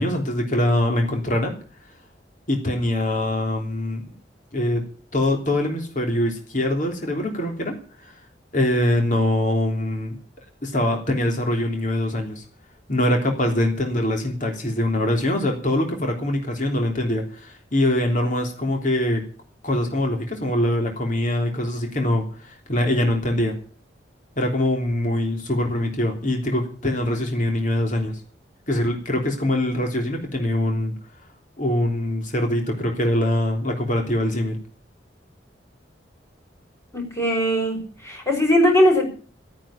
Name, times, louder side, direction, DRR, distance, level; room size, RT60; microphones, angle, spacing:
voice 1, 0.0-1.5 2.5-4.0 4.5-4.8 5.1-7.8 8.0-8.1 8.5-10.2 10.6-12.4 12.9-19.2 19.6-23.6 24.4-28.2 28.7-30.9 31.6-34.6, left 1 dB, 45° left, 3 dB, 3.4 m, -23 dB
voice 2, 36.9-37.8 38.0-39.0, equal, 15° left, 0 dB, 6.0 m, -19 dB
13.5 x 9.8 x 8.7 m, 0.41 s
head